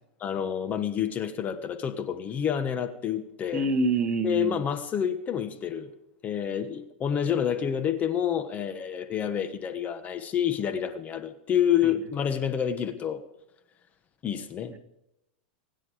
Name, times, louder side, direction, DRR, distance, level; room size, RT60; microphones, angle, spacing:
voice 1, 0.2-3.6 4.2-5.9 6.2-13.2 14.2-14.7, left 9 dB, 25° left, 9 dB, 1.3 m, -28 dB
voice 2, 3.5-4.6 11.8-11.9 14.7-14.8, right 3 dB, 20° right, 6 dB, 2.0 m, -26 dB
23.5 x 9.9 x 5.0 m, 0.84 s
supercardioid pair, 130°, 6 cm